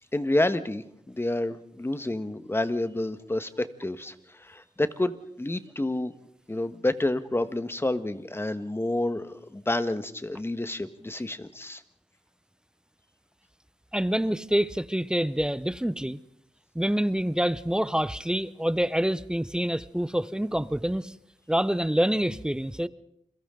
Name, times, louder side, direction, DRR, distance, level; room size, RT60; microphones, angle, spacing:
voice 1, 0.1-6.1 6.5-11.8, left 1 dB, 20° left, 1.4 m, -29 dB
voice 2, 13.9-16.2 16.7-21.1 21.5-22.9, equal, 5° right, 0.8 m, -26 dB
30.0 x 22.5 x 3.9 m
cardioid pair, 60°, 12 cm